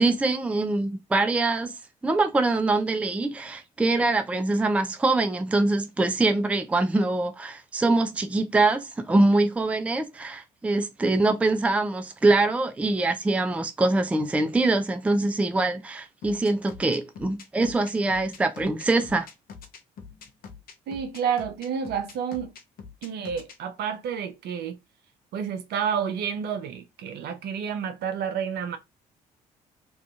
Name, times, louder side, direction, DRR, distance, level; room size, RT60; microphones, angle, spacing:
voice 1, 0.0-1.7 2.0-19.3, right 2 dB, 5° right, 0.4 m, -24 dB
sound 1, 16.2-23.6, left 6 dB, 45° left, 0.7 m, -44 dB
voice 2, 20.9-22.5 23.0-24.8 25.3-28.8, right 7 dB, 55° right, 0.6 m, -30 dB
2.7 x 2.4 x 2.2 m
hypercardioid pair, 50°, 20 cm